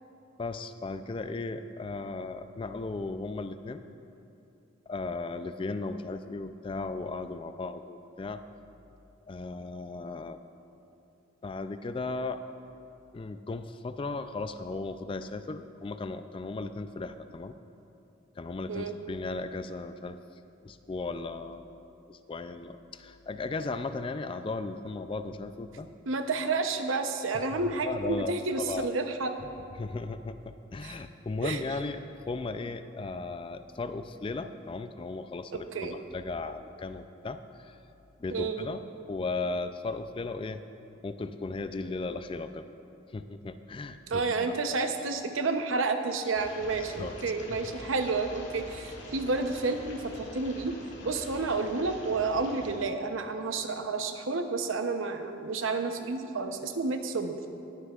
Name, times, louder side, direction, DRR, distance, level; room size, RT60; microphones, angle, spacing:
voice 1, 0.4-3.8 4.9-8.4 9.3-10.4 11.4-12.4 13.1-17.5 18.4-20.2 20.6-21.8 22.1-25.9 27.3-27.4 27.8-28.3 28.6-28.9 29.8-30.4 30.7-37.8 38.2-40.6 41.0-42.6 43.1-44.9 47.0-47.1, left 3 dB, 25° left, 10 dB, 0.3 m, -36 dB
voice 2, 26.1-29.4 30.8-31.0 31.4-31.6 35.5-36.0 38.3-38.6 44.1-50.7 51.0-57.3, right 3 dB, 85° right, 6 dB, 0.8 m, -30 dB
sound 1, 46.3-52.8, left 1 dB, 65° left, 1.5 m, -45 dB
20.0 x 9.8 x 2.4 m, 2.7 s
head